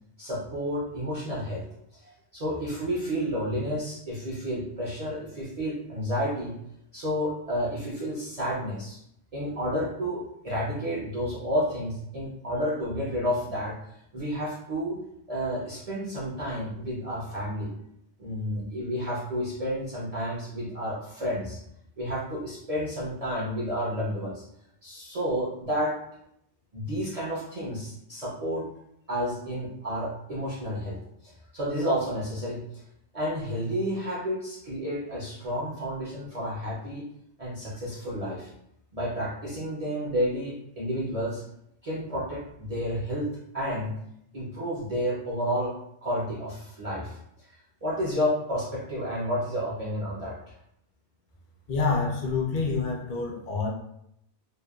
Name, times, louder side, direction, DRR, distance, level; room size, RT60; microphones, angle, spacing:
voice 1, 0.2-1.6 1.9-6.6 6.9-9.0 9.3-13.8 14.1-15.0 15.3-17.7 18.2-21.6 22.0-24.4 24.8-26.0 26.7-28.7 29.1-32.6 33.1-37.1 37.4-38.5 38.9-41.4 41.8-43.3 43.5-43.9 44.3-45.7 46.0-47.2 47.8-50.4, equal, 45° right, -7 dB, 0.5 m, -31 dB
voice 2, 51.7-53.7, left 4 dB, 55° left, -2 dB, 0.6 m, -27 dB
2.9 x 2.1 x 2.3 m, 0.75 s
omnidirectional pair, 1.2 m